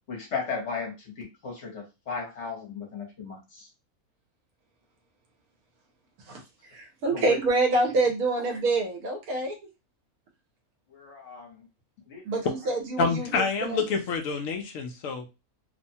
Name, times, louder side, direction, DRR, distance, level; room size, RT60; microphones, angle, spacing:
voice 1, 0.1-3.7 7.1-7.4 10.9-11.7 12.1-12.4, left 5 dB, 55° left, 0 dB, 1.2 m, -36 dB
voice 2, 6.7-9.6 12.2-13.8, right 2 dB, 80° right, 3 dB, 1.3 m, -26 dB
voice 3, 13.0-15.3, left 4 dB, 70° left, 4 dB, 0.9 m, -27 dB
2.9 x 2.1 x 2.7 m, 0.25 s
omnidirectional pair, 1.5 m